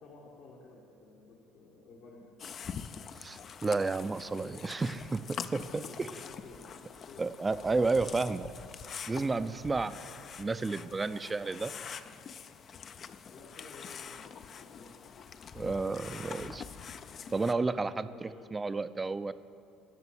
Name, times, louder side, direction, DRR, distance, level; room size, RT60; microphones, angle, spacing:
voice 1, 0.0-2.2 5.6-6.8 7.1-7.2 9.7-10.1 13.3-14.2 14.6-15.0 18.0-18.6, left 3 dB, 70° left, -4 dB, 1.6 m, -53 dB
sound 1, 2.4-17.5, left 7 dB, 45° left, 0.4 m, -45 dB
voice 2, 3.2-6.1 7.2-8.5 9.1-10.0 10.4-11.7 15.5-16.6 17.3-19.3, right 3 dB, 20° right, 14 dB, 0.4 m, -32 dB
11.0 x 6.0 x 7.1 m, 2.4 s
supercardioid pair, 85°, 0 cm